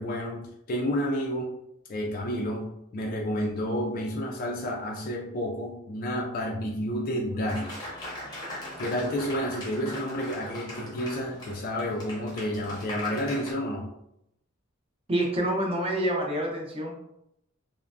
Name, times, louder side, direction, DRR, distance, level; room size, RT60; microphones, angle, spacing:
voice 1, 0.0-1.6 1.9-7.8 8.8-13.9, equal, 45° left, -1 dB, 0.4 m, -30 dB
Applause, 7.5-13.5, left 1 dB, 20° left, 0.7 m, -40 dB
voice 2, 15.1-17.0, right 1 dB, 30° right, -1 dB, 0.7 m, -27 dB
3.2 x 2.0 x 2.4 m, 0.79 s
head